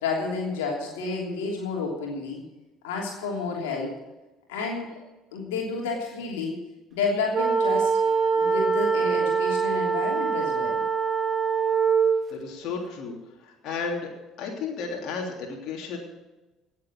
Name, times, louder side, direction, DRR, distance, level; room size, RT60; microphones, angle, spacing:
voice 1, 0.0-2.4 2.8-4.0 4.5-5.0 5.3-6.6 6.9-7.9 8.3-10.8, left 4 dB, 70° left, -1 dB, 3.1 m, -30 dB
sound 1, 7.3-12.2, right 5 dB, 35° right, 2.5 m, -23 dB
voice 2, 12.3-13.1 13.4-14.1 14.4-16.0, left 5 dB, 55° left, 0 dB, 3.1 m, -33 dB
17.5 x 7.4 x 7.4 m, 1.1 s
figure-of-eight pair, 55°, 0 cm